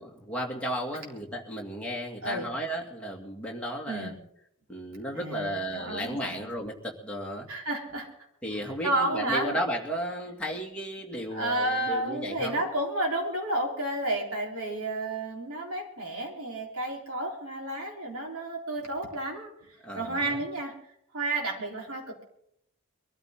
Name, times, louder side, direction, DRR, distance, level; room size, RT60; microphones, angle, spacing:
voice 1, 0.0-4.1 4.7-7.5 8.4-12.6 19.8-20.4, equal, 5° left, -2 dB, 2.2 m, -34 dB
voice 2, 5.1-6.4 7.5-8.1 8.8-9.6 11.3-20.8 21.1-22.2, right 1 dB, 75° right, 0 dB, 3.8 m, -31 dB
23.0 x 13.5 x 3.7 m, 0.73 s
head